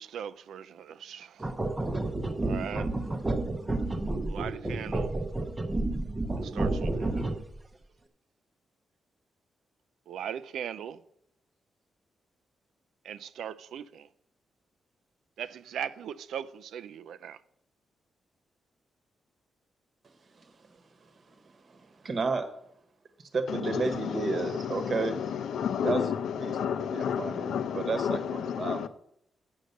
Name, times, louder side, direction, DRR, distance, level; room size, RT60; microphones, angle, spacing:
voice 1, 0.0-1.5 2.4-2.9 4.3-5.1 6.4-7.1 10.1-11.0 13.0-14.1 15.4-17.4, right 9 dB, 90° right, 0.4 m, -39 dB
sound 1, 1.4-7.6, right 2 dB, 15° right, 0.7 m, -30 dB
voice 2, 21.3-22.5 23.3-25.2 25.8-26.0 26.4-28.9, right 4 dB, 35° right, 1.0 m, -32 dB
voice 3, 23.5-28.9, left 8 dB, 80° left, 0.6 m, -31 dB
8.0 x 6.4 x 6.6 m
wide cardioid pair, 170°, 0 cm